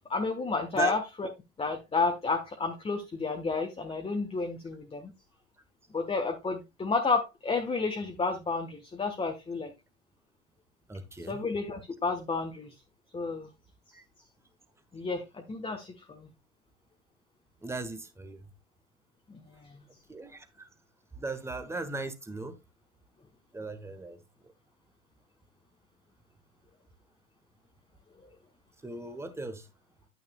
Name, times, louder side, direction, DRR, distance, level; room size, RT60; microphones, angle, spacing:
voice 1, 0.1-1.3 1.6-5.1 5.9-9.7 11.3-12.7 13.1-13.5 14.9-16.3 19.3-19.8, left 4 dB, 15° left, 1.3 m, -31 dB
voice 2, 10.9-11.4 13.9-14.0 17.6-18.4 20.1-20.7 21.2-22.6 23.5-24.2 28.8-29.7, right 3 dB, 5° right, 1.3 m, -37 dB
9.3 x 8.9 x 2.3 m
hypercardioid pair, 100°, 42 cm